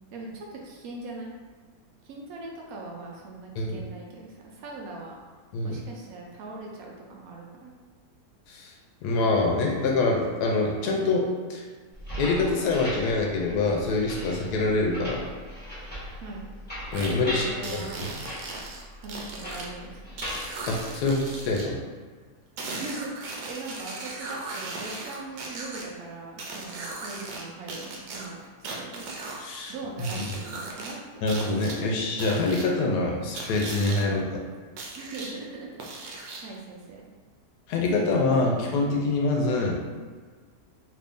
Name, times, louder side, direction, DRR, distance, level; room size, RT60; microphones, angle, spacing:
voice 1, 0.1-1.3 2.0-5.1 5.6-7.7 16.2-16.5 17.1-18.1 19.0-20.3 22.7-29.2 29.7-31.4 34.9-35.7 36.0-37.1, right 3 dB, 65° right, -1 dB, 1.0 m, -40 dB
voice 2, 9.0-11.6 12.2-15.2 16.9-17.5 17.7-17.8 20.7-21.8 29.4-29.7 30.0-30.2 31.2-34.4 37.7-39.8, left 3 dB, 80° left, -1 dB, 1.1 m, -25 dB
sound 1, 11.9-21.6, equal, 5° left, 0.9 m, -39 dB
sound 2, 16.9-17.1 17.6-19.7 20.2-21.7 22.6-25.8 26.4-27.4 27.7-29.4 30.0-30.9 31.3-31.8 32.2-32.7 33.4-34.0 34.8-35.3 35.8-36.6, right 3 dB, 90° right, 1.2 m, -37 dB
3.0 x 2.6 x 3.4 m, 1.5 s
omnidirectional pair, 1.7 m